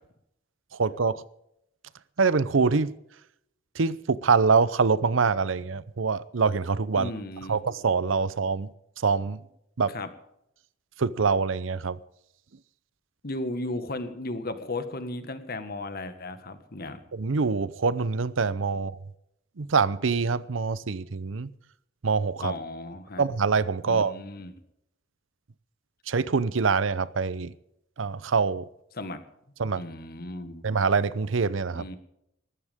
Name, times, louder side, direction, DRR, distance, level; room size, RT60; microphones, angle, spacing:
voice 1, 0.8-1.2 2.2-2.9 3.7-7.1 7.5-8.7 9.0-9.4 9.8-10.0 11.0-12.0 17.1-18.9 19.6-21.5 22.0-22.5 23.2-24.1 26.1-27.5 28.0-28.7 29.6-29.8 30.6-31.8, right 5 dB, 85° right, 0.7 m, -25 dB
voice 2, 6.9-7.6 9.8-10.1 13.2-17.0 22.4-23.2 23.8-24.5 29.0-29.2 29.7-30.6 31.7-32.0, left 2 dB, 50° left, 1.6 m, -35 dB
19.5 x 14.5 x 3.6 m
head